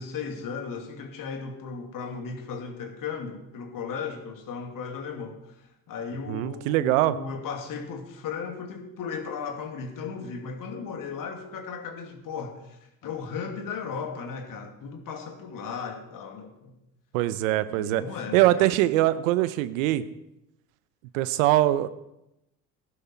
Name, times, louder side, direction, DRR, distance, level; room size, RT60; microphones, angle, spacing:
voice 1, 0.0-16.8 17.7-18.7, left 5 dB, 55° left, 4 dB, 2.5 m, -36 dB
voice 2, 6.3-7.2 17.1-18.0 18.3-20.0 21.1-21.9, right 15 dB, 80° right, 15 dB, 0.8 m, -22 dB
15.5 x 11.5 x 4.5 m, 0.87 s
hypercardioid pair, 70°, 39 cm